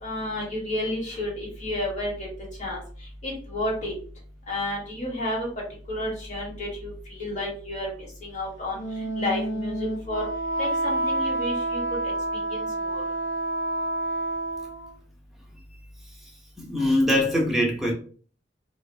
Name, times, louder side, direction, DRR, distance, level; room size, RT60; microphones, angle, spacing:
voice 1, 0.0-2.1 2.6-2.8 3.2-3.9 4.5-5.5 5.9-8.8 9.2-10.2 10.6-11.8 12.5-13.0, left 1 dB, 40° left, 1.0 m, -31 dB
Wind instrument woodwind instrument, 8.7-14.9, right 1 dB, 85° left, 0.7 m, -28 dB
voice 2, 16.6-17.9, left 1 dB, ahead, 0.5 m, -22 dB
2.5 x 2.0 x 2.5 m
head